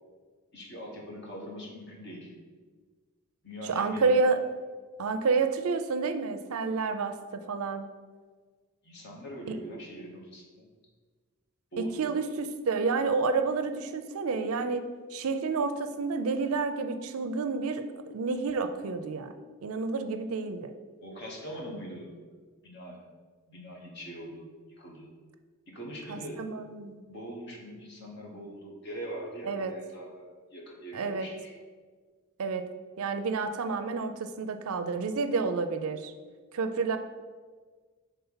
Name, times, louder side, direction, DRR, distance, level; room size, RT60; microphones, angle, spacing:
voice 1, 0.5-2.3 3.4-4.2 8.8-10.6 11.7-11.9 21.0-22.1 22.6-23.1 23.5-24.5 24.8-25.1 25.7-26.4 27.1-31.5, equal, 50° left, -2 dB, 1.3 m, -42 dB
voice 2, 3.6-4.4 5.0-7.9 9.5-9.6 12.0-19.3 19.6-20.7 26.1-27.0 29.5-29.7 30.9-31.3 32.4-32.7 33.0-36.1 36.5-37.0, right 4 dB, 75° right, 9 dB, 0.5 m, -29 dB
5.8 x 3.6 x 5.6 m, 1.5 s
head